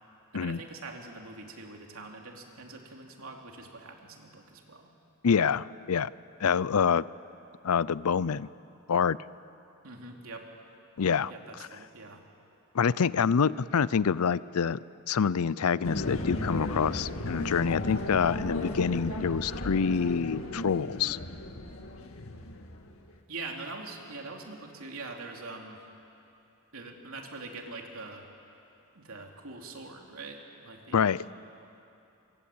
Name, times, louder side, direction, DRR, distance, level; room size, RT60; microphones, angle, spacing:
voice 1, 0.3-4.9 9.8-10.5 11.3-12.2 23.3-25.8 26.7-28.3 28.9-31.3, right 3 dB, 70° right, 1 dB, 3.4 m, -43 dB
voice 2, 5.2-6.1 6.4-7.0 7.6-8.5 8.9-9.2 11.0-11.3 12.7-14.8 15.1-21.2 30.9-31.2, left 6 dB, 85° left, 19 dB, 0.5 m, -26 dB
sound 1, 15.8-23.0, left 1 dB, 70° left, 2.0 m, -35 dB
27.0 x 25.0 x 8.8 m, 2.7 s
head